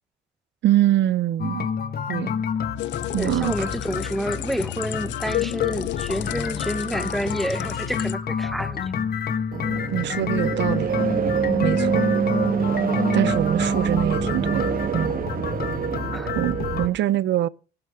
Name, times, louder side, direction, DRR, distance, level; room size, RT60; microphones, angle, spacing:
voice 1, 0.6-1.7 2.1-2.3 3.1-3.7 9.9-11.0 11.6-12.1 13.1-14.6 14.9-15.2 16.4-17.5, right 13 dB, 75° right, 0.7 m, -24 dB
sound 1, 1.4-16.9, left 7 dB, 55° left, 1.4 m, -29 dB
sound 2, 2.8-8.1, left 16 dB, 90° left, 0.7 m, -32 dB
voice 2, 3.2-8.9 16.1-16.4, equal, ahead, 0.8 m, -29 dB
sound 3, 9.5-16.9, right 7 dB, 50° right, 1.4 m, -25 dB
19.0 x 12.0 x 3.7 m
cardioid pair, 105°, 19 cm